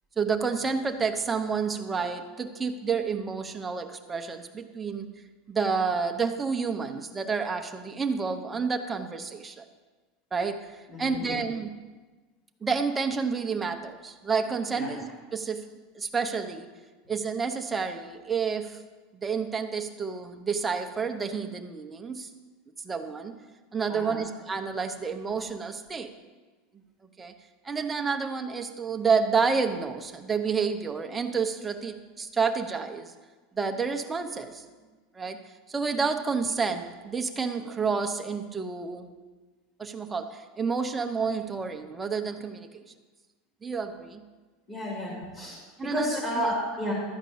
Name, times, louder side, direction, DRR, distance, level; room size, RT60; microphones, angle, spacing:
voice 1, 0.2-5.1 5.5-9.6 10.3-11.7 12.6-15.6 16.0-16.7 17.1-18.8 19.1-22.3 22.8-23.3 23.7-26.1 27.2-27.3 27.6-33.1 33.5-34.6 35.1-39.1 39.8-42.8 43.6-44.2 45.8-46.5, right 5 dB, 10° right, 5 dB, 0.7 m, -29 dB
voice 2, 10.9-11.3 14.7-14.9 23.9-24.2 44.7-45.6 45.9-46.9, left 1 dB, 15° left, -8 dB, 2.8 m, -31 dB
12.0 x 5.1 x 8.5 m, 1.3 s
supercardioid pair, 165°, 0 cm